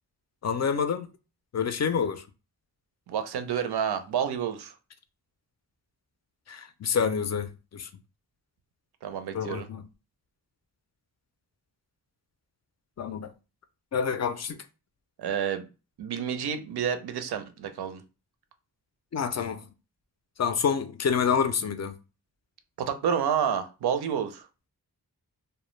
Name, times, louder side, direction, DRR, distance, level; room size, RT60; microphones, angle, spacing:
voice 1, 0.4-1.1 1.5-2.2 6.5-7.9 9.3-9.8 13.0-13.3 13.9-14.6 19.1-19.6 20.4-22.0, left 6 dB, 45° left, 0.4 m, -28 dB
voice 2, 3.1-4.7 9.0-9.7 15.2-15.7 16.0-18.0 22.8-24.5, right 8 dB, 85° right, 0.5 m, -29 dB
2.1 x 2.1 x 3.0 m
cardioid pair, 50°, 38 cm